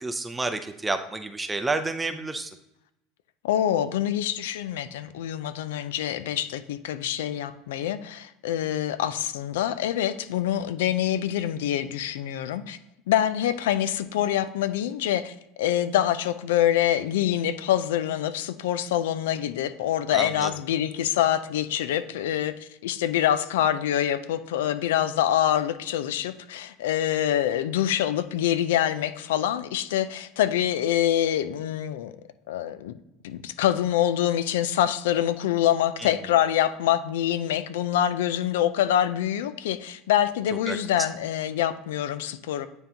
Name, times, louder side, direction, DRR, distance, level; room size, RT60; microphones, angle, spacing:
voice 1, 0.0-2.5 20.1-20.5 36.0-36.1 40.7-40.8, right 3 dB, 15° right, 9 dB, 0.5 m, -30 dB
voice 2, 3.4-12.8 13.1-32.1 32.5-33.0 33.2-42.7, left 11 dB, 85° left, 13 dB, 0.4 m, -25 dB
9.1 x 3.8 x 2.8 m, 0.86 s
supercardioid pair, 95°, 0 cm